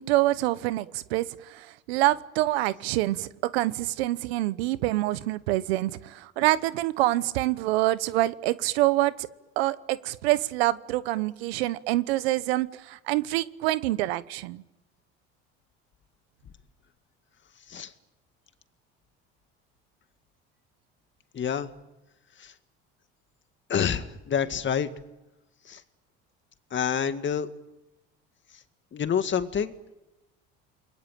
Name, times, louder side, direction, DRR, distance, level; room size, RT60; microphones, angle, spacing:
voice 1, 0.0-9.3 9.6-14.6, right 17 dB, 85° right, 16 dB, 1.1 m, -26 dB
voice 2, 21.3-21.7 22.4-22.5 23.7-24.9 25.7-25.8 26.7-27.5 28.9-29.7, left 7 dB, 40° left, 10 dB, 2.0 m, -27 dB
29.0 x 22.0 x 9.0 m, 0.97 s
supercardioid pair, 85°, 30 cm